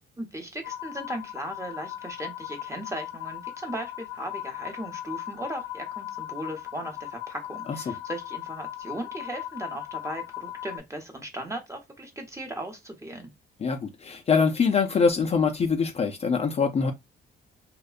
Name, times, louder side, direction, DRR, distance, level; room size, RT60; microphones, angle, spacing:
voice 1, 0.2-13.3, right 1 dB, 15° right, 0.8 m, -37 dB
sound 1, 0.6-10.8, left 13 dB, 90° left, 0.5 m, -38 dB
voice 2, 13.6-16.9, left 5 dB, 30° left, 0.4 m, -24 dB
2.6 x 2.1 x 2.4 m
cardioid pair, 90°, 20 cm